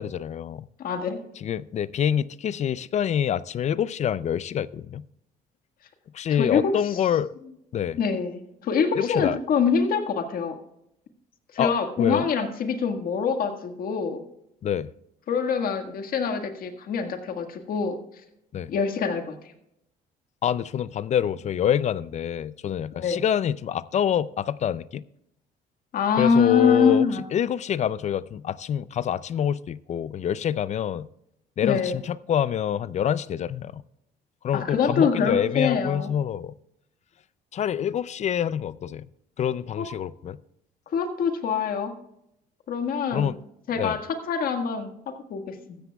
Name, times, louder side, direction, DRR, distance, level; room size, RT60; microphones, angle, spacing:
voice 1, 0.0-0.7 1.4-5.0 6.1-7.3 7.7-8.0 9.0-9.4 11.6-12.3 14.6-14.9 18.5-18.7 20.4-25.0 26.2-31.1 31.6-33.8 34.4-36.5 37.5-39.1 39.4-40.4 43.1-43.4 43.7-44.0, left 9 dB, 45° left, 0.4 m, -26 dB
voice 2, 0.8-1.2 6.4-6.7 7.9-10.6 11.5-14.2 15.3-18.0 18.7-19.4 22.9-23.2 25.9-27.2 31.6-32.0 34.5-36.1 39.8-39.9 40.9-41.9 42.7-43.3 43.7-44.0 44.3-44.9 45.3-45.8, left 5 dB, 60° left, 1.7 m, -25 dB
15.5 x 13.0 x 2.3 m
cardioid pair, 110°, 17 cm